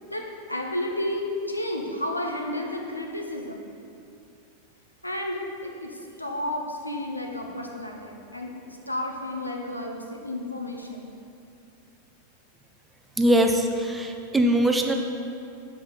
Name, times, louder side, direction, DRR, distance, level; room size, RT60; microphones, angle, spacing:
voice 1, 0.1-3.7 5.0-11.1, left 1 dB, 85° left, 1 dB, 0.8 m, -32 dB
voice 2, 13.2-14.9, right 1 dB, 10° right, 3 dB, 0.6 m, -21 dB
7.1 x 4.8 x 5.7 m, 2.5 s
figure-of-eight pair, 90°, 0 cm